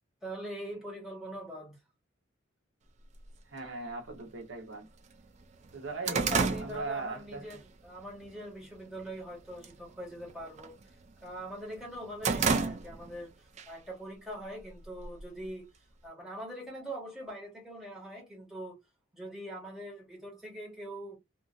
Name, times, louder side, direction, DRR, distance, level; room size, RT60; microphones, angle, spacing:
voice 1, 0.2-1.8 6.0-10.8 11.2-13.3 13.7-15.7 16.0-18.7 19.1-21.2, right 1 dB, 5° right, 1.3 m, -42 dB
sound 1, 3.2-3.3 4.2-4.3 4.7-4.8 5.2-7.6 8.0-8.3 8.7-9.2 9.5-9.8 10.1-11.4 11.7-13.2 13.6-13.7 14.6-15.5, right 4 dB, 35° right, 0.3 m, -31 dB
voice 2, 3.4-4.9 5.7-6.3 6.6-7.6, right 3 dB, 80° right, 1.1 m, -39 dB
2.8 x 2.5 x 2.4 m
head